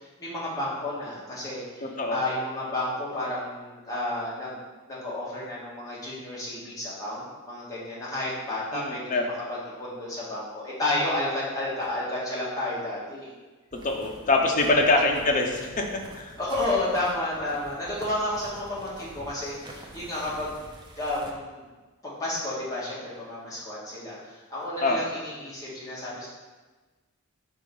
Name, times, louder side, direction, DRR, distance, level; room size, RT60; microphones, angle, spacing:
voice 1, 0.0-13.3 16.4-20.7 21.0-21.6 22.0-26.3, left 1 dB, 15° left, -8 dB, 1.6 m, -31 dB
voice 2, 1.8-2.2 8.7-9.2 13.8-16.4 24.8-25.1, left 2 dB, 35° left, 1 dB, 0.7 m, -24 dB
sound 1, 13.7-21.3, right 1 dB, 20° right, 0.6 m, -47 dB
5.1 x 3.7 x 5.3 m, 1.3 s
head